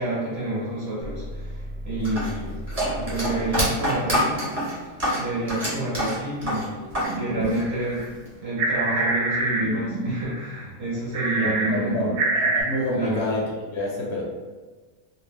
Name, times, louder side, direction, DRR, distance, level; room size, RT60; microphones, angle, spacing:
voice 1, 0.0-2.6 2.9-4.5 4.8-8.1 8.4-12.2 12.9-13.4, right 1 dB, 50° right, -7 dB, 0.9 m, -29 dB
sound 1, 1.0-3.8, equal, 25° left, 0.5 m, -35 dB
sound 2, 2.0-7.2 7.4-8.3, equal, 30° right, 0.9 m, -26 dB
sound 3, 7.0-8.1 8.4-10.9 11.1-12.6, right 2 dB, 80° right, 1.0 m, -26 dB
voice 2, 11.4-13.4 13.7-14.2, left 2 dB, 70° left, -2 dB, 0.6 m, -28 dB
2.5 x 2.1 x 3.3 m, 1.3 s
omnidirectional pair, 1.6 m